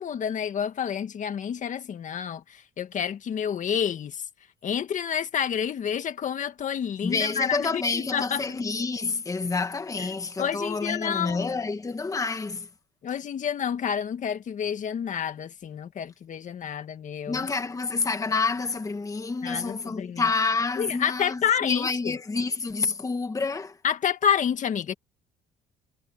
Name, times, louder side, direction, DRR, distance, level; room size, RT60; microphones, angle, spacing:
voice 1, 0.0-4.2 4.6-8.4 10.0-10.1 10.4-11.5 13.0-17.5 19.4-20.2 20.8-22.2 23.8-24.9, left 8 dB, 50° left, 1.8 m, -29 dB
voice 2, 7.0-12.7 17.3-23.8, left 4 dB, 20° left, 1.6 m, -28 dB
cardioid pair, 110°, 17 cm